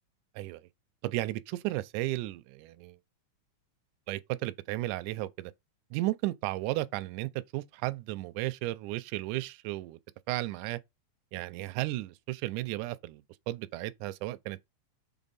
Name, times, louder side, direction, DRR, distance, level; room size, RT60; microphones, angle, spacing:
voice 1, 1.0-3.0 4.1-5.5 5.9-10.0 10.3-10.8 11.3-14.7, right 17 dB, 85° right, 2.0 m, -34 dB
6.1 x 3.8 x 4.1 m
omnidirectional pair, 3.5 m